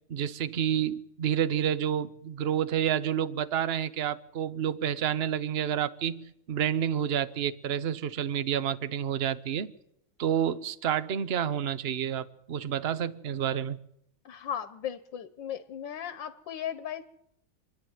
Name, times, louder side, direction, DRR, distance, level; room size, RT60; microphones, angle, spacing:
voice 1, 0.1-9.7 10.2-13.8, right 9 dB, 45° right, 0.8 m, -29 dB
voice 2, 14.2-17.0, left 9 dB, 85° left, 1.7 m, -36 dB
27.0 x 11.0 x 9.4 m
omnidirectional pair, 1.9 m